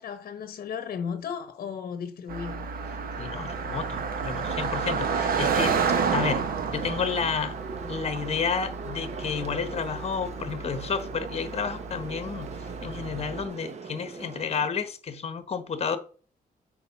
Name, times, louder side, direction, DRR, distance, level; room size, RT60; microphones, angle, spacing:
voice 1, 0.0-2.7, left 7 dB, 60° left, 1.0 m, -35 dB
Car passing by, 2.3-13.5, right 5 dB, 65° right, 1.1 m, -31 dB
voice 2, 3.2-5.8 6.1-7.6 7.9-16.0, left 6 dB, 40° left, 1.2 m, -31 dB
sound 1, 6.7-14.7, right 4 dB, 45° right, 0.9 m, -41 dB
8.4 x 3.9 x 5.9 m
cardioid pair, 130°, 16 cm